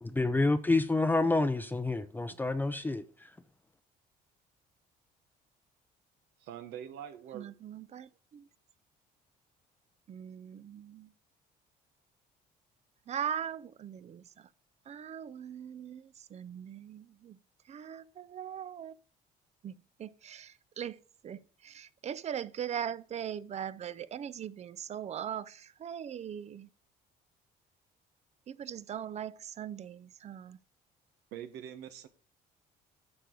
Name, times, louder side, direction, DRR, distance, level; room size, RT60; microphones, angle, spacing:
voice 1, 0.0-3.3, left 2 dB, 10° left, 0.6 m, -28 dB
voice 2, 6.4-7.5 31.3-32.1, right 9 dB, 80° right, 1.1 m, -44 dB
voice 3, 7.3-8.5 10.1-11.1 13.1-14.5 14.9-17.4 17.7-18.9 19.6-26.7 28.5-30.6, right 9 dB, 40° right, 0.5 m, -40 dB
11.5 x 6.7 x 3.8 m
cardioid pair, 110°, 17 cm